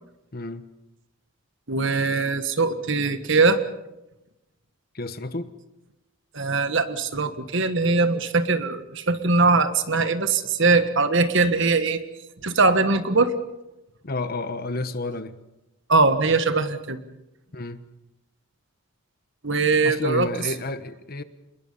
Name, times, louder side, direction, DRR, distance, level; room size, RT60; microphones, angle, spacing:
voice 1, 0.3-0.7 4.9-5.5 14.0-15.4 17.5-17.8 19.8-21.2, left 2 dB, 45° left, 12 dB, 1.1 m, -31 dB
voice 2, 1.7-3.6 6.3-12.0 12.4-13.4 15.9-17.0 19.4-20.3, right 3 dB, 55° right, 10 dB, 1.5 m, -21 dB
27.0 x 22.0 x 5.5 m, 0.95 s
head